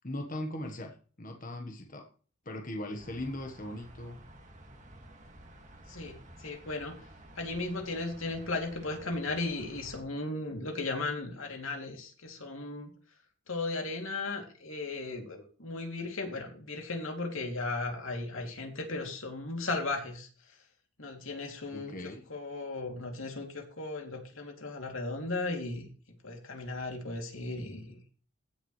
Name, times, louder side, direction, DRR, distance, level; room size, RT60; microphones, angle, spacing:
voice 1, 0.0-2.1 2.4-4.2 21.7-22.2, left 1 dB, 40° left, 3 dB, 1.3 m, -39 dB
sound 1, 3.0-10.0, right 1 dB, 35° right, 2.1 m, -52 dB
voice 2, 5.9-7.0 7.4-12.9 13.5-20.3 21.0-25.9 26.2-28.0, left 2 dB, 80° left, 3 dB, 2.8 m, -36 dB
16.0 x 7.1 x 3.2 m, 0.40 s
head